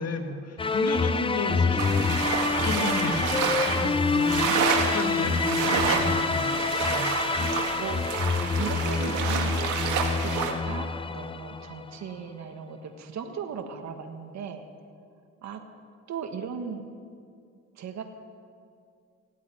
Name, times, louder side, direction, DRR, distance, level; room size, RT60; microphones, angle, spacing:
voice 1, 0.0-2.2 2.6-4.4 4.9-6.5 6.8-7.1, left 3 dB, 55° left, 4 dB, 2.2 m, -33 dB
sound 1, 0.6-11.9, left 4 dB, 20° left, 0.5 m, -27 dB
sound 2, 1.8-10.5, right 6 dB, 85° right, 1.7 m, -29 dB
voice 2, 3.8-4.8 6.7-8.1 8.5-9.7 10.2-14.7 15.4-15.6 16.1-16.9 17.7-18.0, right 6 dB, 65° right, 5 dB, 1.5 m, -38 dB
16.5 x 8.3 x 9.9 m, 2.3 s
cardioid pair, 90°, 30 cm